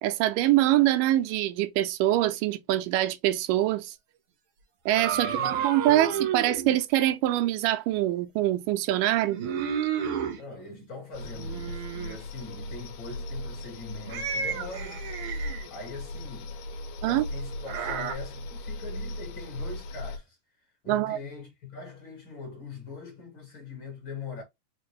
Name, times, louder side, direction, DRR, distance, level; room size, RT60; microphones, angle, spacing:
voice 1, 0.0-3.9 4.9-9.4 17.0-17.3 20.9-21.2, right 14 dB, 85° right, 2.2 m, -24 dB
sound 1, 4.9-6.8 9.2-10.4 11.2-12.2 14.1-15.7 17.7-18.1, right 7 dB, 70° right, 1.3 m, -31 dB
voice 2, 5.1-5.5 5.9-6.1 10.3-15.1 15.7-16.5 17.0-24.4, left 4 dB, 45° left, 1.8 m, -42 dB
sound 2, 11.1-20.2, left 1 dB, 80° left, 2.0 m, -38 dB
5.2 x 2.5 x 3.0 m
omnidirectional pair, 3.8 m